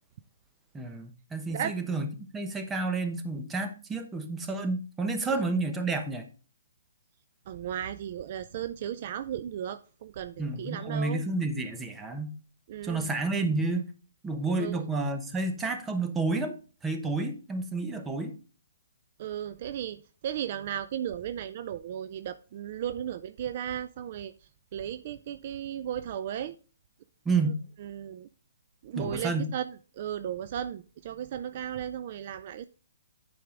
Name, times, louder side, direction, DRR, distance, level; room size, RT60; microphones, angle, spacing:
voice 1, 0.7-6.2 10.4-12.4 12.8-13.9 14.2-16.6 16.8-18.3 27.2-27.6 29.0-29.5, right 3 dB, 10° right, 0.9 m, -30 dB
voice 2, 7.5-11.2 12.7-13.1 14.6-14.8 19.2-20.0 20.2-24.3 24.7-26.6 27.8-28.3 28.8-32.7, right 10 dB, 40° right, 0.4 m, -35 dB
10.5 x 4.8 x 3.7 m
hypercardioid pair, 160°, 0 cm